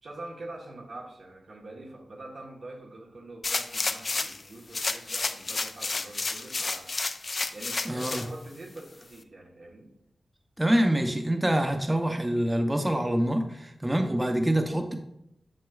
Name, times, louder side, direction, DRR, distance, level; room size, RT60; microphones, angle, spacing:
voice 1, 0.0-6.9 7.5-9.9, right 2 dB, 70° right, -1 dB, 1.2 m, -44 dB
sound 1, 3.4-4.4 4.7-8.3 8.8-8.9, left 3 dB, 50° left, 0.4 m, -31 dB
voice 2, 7.9-8.2 10.6-15.0, right 1 dB, 15° right, 4 dB, 0.7 m, -25 dB
6.7 x 6.2 x 2.4 m, 0.81 s
cardioid pair, 40°, 0 cm